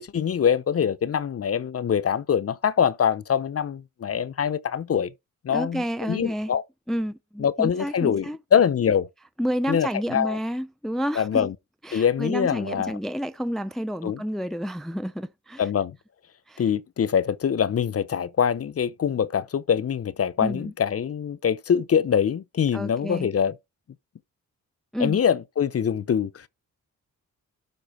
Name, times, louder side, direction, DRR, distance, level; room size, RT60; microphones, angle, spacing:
voice 1, 0.0-5.1 5.4-6.6 7.4-9.1 9.7-10.4 11.1-11.5 11.9-13.0 14.0-14.2 15.6-16.0 16.6-23.6 25.0-26.5, left 8 dB, 45° left, 0.7 m, -24 dB
voice 2, 5.5-6.5 6.9-8.4 9.4-11.5 11.8-15.7 16.5-16.6 20.4-20.7 22.7-23.3 24.9-25.2, equal, ahead, 0.5 m, -30 dB
12.0 x 4.3 x 4.3 m
cardioid pair, 95°, 32 cm